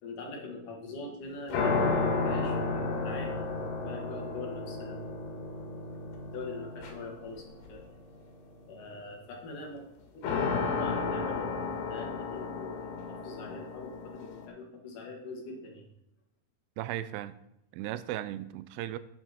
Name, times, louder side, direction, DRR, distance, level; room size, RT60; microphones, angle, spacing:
voice 1, 0.0-5.0 6.3-7.8 8.7-9.9 10.1-11.6 11.9-15.8, left 3 dB, 60° left, 0 dB, 2.8 m, -43 dB
sound 1, 1.5-7.8 10.2-14.5, left 4 dB, 80° left, 3.6 m, -32 dB
voice 2, 16.8-17.4 17.7-19.0, right 13 dB, 90° right, 15 dB, 2.7 m, -36 dB
9.3 x 8.8 x 4.2 m, 0.81 s
omnidirectional pair, 4.7 m